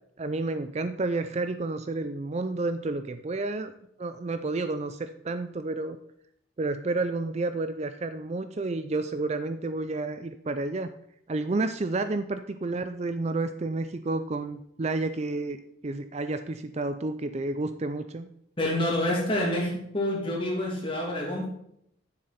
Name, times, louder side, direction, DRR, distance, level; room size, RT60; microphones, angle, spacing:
voice 1, 0.2-3.7 4.0-6.0 6.6-10.9 11.3-15.6 15.8-18.3, right 2 dB, 30° right, 10 dB, 0.4 m, -30 dB
voice 2, 18.6-21.5, left 1 dB, 25° left, -2 dB, 2.5 m, -28 dB
9.9 x 7.6 x 4.3 m, 0.75 s
head